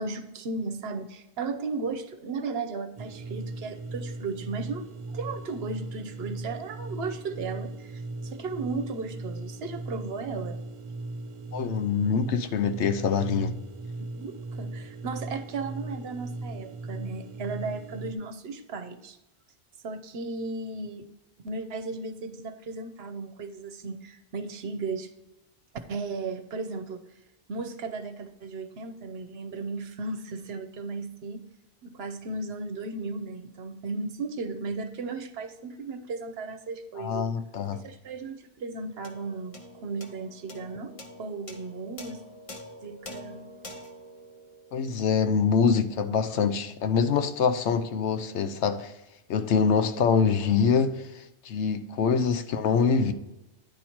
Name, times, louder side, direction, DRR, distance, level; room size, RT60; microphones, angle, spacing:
voice 1, 0.0-10.6 14.1-19.2 19.8-21.0 21.4-25.1 25.9-27.0 27.5-31.4 31.8-37.3 37.7-39.6 39.8-42.2 42.8-43.5, right 3 dB, 70° right, 1.0 m, -35 dB
sound 1, 3.0-18.1, right 2 dB, 40° right, 0.4 m, -38 dB
voice 2, 11.5-13.5 37.0-37.8 44.7-48.9 49.3-53.1, left 6 dB, 85° left, 1.0 m, -25 dB
sound 2, 39.0-45.6, left 1 dB, 35° left, 0.9 m, -46 dB
10.5 x 4.3 x 4.4 m
omnidirectional pair, 1.1 m